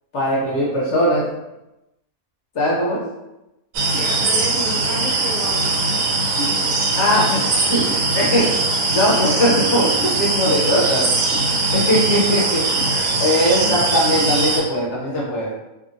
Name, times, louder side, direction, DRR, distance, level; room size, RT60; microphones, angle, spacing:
voice 1, 0.1-1.3 2.5-3.1 7.0-12.9 13.2-15.5, equal, 60° left, -4 dB, 0.9 m, -20 dB
sound 1, 3.7-14.6, right 2 dB, 85° right, 1.1 m, -20 dB
voice 2, 3.9-6.0 6.4-6.6, right 1 dB, 40° right, -9 dB, 0.8 m, -31 dB
2.7 x 2.7 x 2.6 m, 0.93 s
omnidirectional pair, 1.5 m